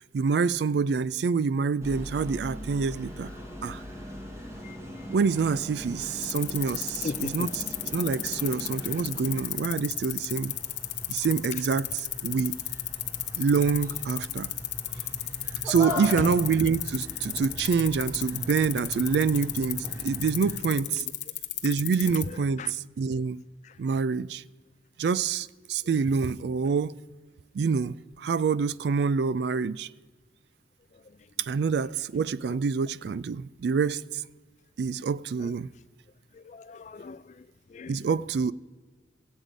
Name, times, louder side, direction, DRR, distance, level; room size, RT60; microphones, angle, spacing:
voice 1, 0.0-3.3 3.6-3.8 5.1-7.6 7.9-10.5 11.1-12.6 13.4-14.5 15.6-21.0 21.6-23.4 23.8-24.4 25.0-26.9 27.5-29.9 31.4-34.2 34.8-35.7 37.9-38.5, right 5 dB, 70° right, 0.3 m, -26 dB
sound 1, 1.8-20.6, left 1 dB, 15° right, 1.4 m, -40 dB
sound 2, 6.2-22.3, left 17 dB, 80° left, 0.7 m, -33 dB
voice 2, 7.0-7.5 21.0-21.1 22.6-22.7 36.3-37.3 37.7-38.0, left 3 dB, 40° left, 0.4 m, -38 dB
16.0 x 8.1 x 5.0 m
head